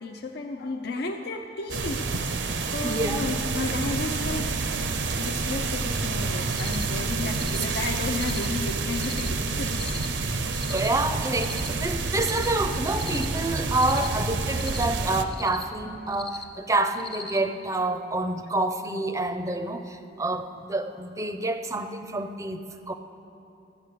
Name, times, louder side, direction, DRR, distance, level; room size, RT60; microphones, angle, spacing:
voice 1, 0.0-4.5 4.8-10.0, left 3 dB, 60° left, 3 dB, 0.5 m, -33 dB
sound 1, 1.7-15.2, right 3 dB, 75° right, 0.6 m, -28 dB
voice 2, 2.8-3.2 10.2-22.9, right 2 dB, 20° right, 8 dB, 0.5 m, -28 dB
Cricket, 6.4-6.8 7.3-7.6 8.1-8.5 8.9-9.3 9.7-10.1 10.5-10.9 11.3-11.7 12.1-12.5 12.9-13.3 13.7-14.1 14.5-14.8 15.3-15.6 16.1-16.4 16.9-17.4, left 3 dB, 30° left, 0.9 m, -40 dB
12.5 x 7.6 x 6.6 m, 2.8 s
head